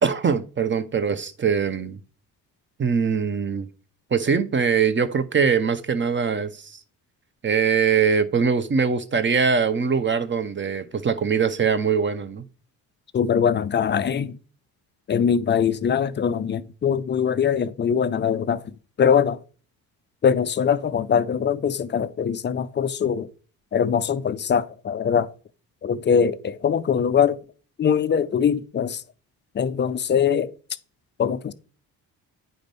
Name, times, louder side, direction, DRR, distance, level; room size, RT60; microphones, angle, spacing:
voice 1, 0.0-2.0 2.8-3.7 4.1-6.8 7.4-12.4, right 6 dB, 25° right, 0.7 m, -22 dB
voice 2, 13.1-14.4 15.1-18.7 19.0-19.4 20.2-23.3 23.7-25.3 25.8-27.4 27.8-29.0 29.5-30.5 31.2-31.5, left 7 dB, 25° left, 0.4 m, -22 dB
9.1 x 5.0 x 3.3 m
hypercardioid pair, 45°, 50 cm